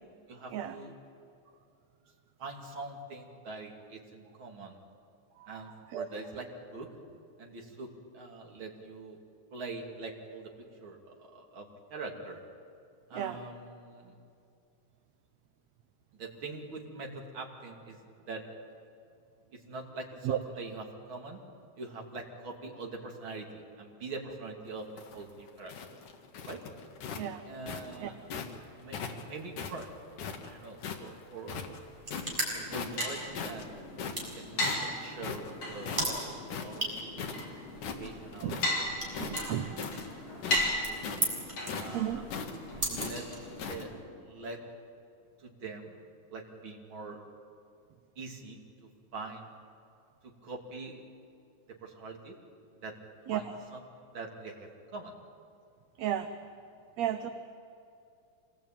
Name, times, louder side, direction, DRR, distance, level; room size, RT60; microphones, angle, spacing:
voice 1, 0.3-0.9 2.4-4.8 5.5-6.9 7.4-9.2 9.5-12.4 13.1-14.2 16.1-18.4 19.5-21.4 21.8-25.7 26.4-26.6 27.5-28.3 28.7-29.9 30.4-31.6 32.5-33.7 34.3-36.0 36.6-37.4 37.8-39.8 40.2-40.5 40.9-41.1 41.7-42.4 42.8-43.3 43.7-43.9 44.2-44.6 45.4-46.0 46.3-47.2 48.2-49.5 50.2-51.0 51.7-52.4 52.7-53.0 53.3-53.4 53.7-55.1, right 3 dB, 40° right, 0 dB, 3.4 m, -44 dB
sound 1, 24.8-28.6 28.9-31.1 31.4-32.4 32.7-33.1 33.4-37.5 37.7-38.8 39.1-43.9, left 6 dB, 85° left, 3.2 m, -39 dB
sound 2, 31.8-43.9, right 1 dB, 15° right, 6.4 m, -39 dB
sound 3, 32.4-44.0, left 1 dB, 60° left, 5.9 m, -37 dB
voice 2, 39.2-39.7 41.9-42.2 42.9-43.0 53.3-53.4 56.0-56.3 57.0-57.3, right 11 dB, 70° right, 7 dB, 2.0 m, -33 dB
26.5 x 20.0 x 9.1 m, 2.5 s
omnidirectional pair, 3.5 m